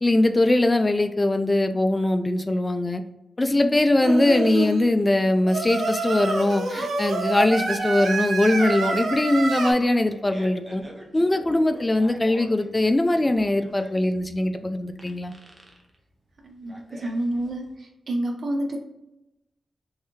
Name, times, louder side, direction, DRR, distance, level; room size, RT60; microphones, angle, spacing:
voice 1, 0.0-3.0 3.4-10.8 11.1-15.3, left 1 dB, 20° left, 8 dB, 0.4 m, -21 dB
Singing, 4.0-4.8 5.5-9.7, right 3 dB, 85° right, 0.6 m, -27 dB
Fart, 9.8-17.7, equal, 20° right, 0.9 m, -46 dB
voice 2, 16.4-18.8, right 1 dB, 60° right, 2 dB, 0.9 m, -29 dB
3.4 x 3.2 x 3.1 m, 0.90 s
cardioid pair, 75°, 0 cm